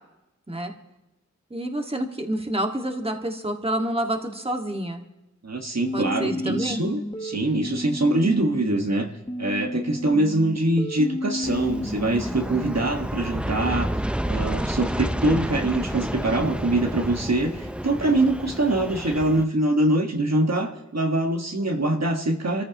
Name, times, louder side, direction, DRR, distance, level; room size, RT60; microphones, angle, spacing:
voice 1, 1.5-5.0 5.9-6.8, right 1 dB, 20° right, 3 dB, 1.8 m, -28 dB
voice 2, 5.4-9.1 9.4-22.6, right 1 dB, 60° right, 3 dB, 1.5 m, -24 dB
sound 1, 5.8-8.9 9.3-12.3, left 1 dB, 15° left, 1.3 m, -32 dB
Aircraft, 11.4-19.4, equal, 5° right, 0.5 m, -30 dB
27.5 x 14.5 x 3.0 m, 0.97 s
wide cardioid pair, 50°, 30 cm